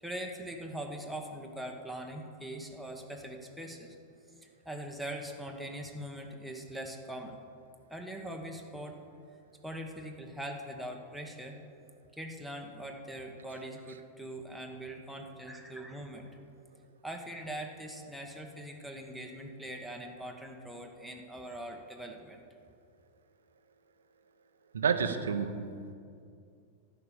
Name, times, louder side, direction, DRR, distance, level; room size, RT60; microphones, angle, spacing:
voice 1, 0.0-3.9 4.4-7.4 7.9-9.0 9.6-11.5 12.1-16.3 17.0-22.4, right 1 dB, ahead, 3 dB, 1.2 m, -42 dB
voice 2, 24.7-25.9, right 6 dB, 70° right, 9 dB, 0.7 m, -30 dB
11.5 x 5.7 x 8.4 m, 2.4 s
figure-of-eight pair, 90°, 0 cm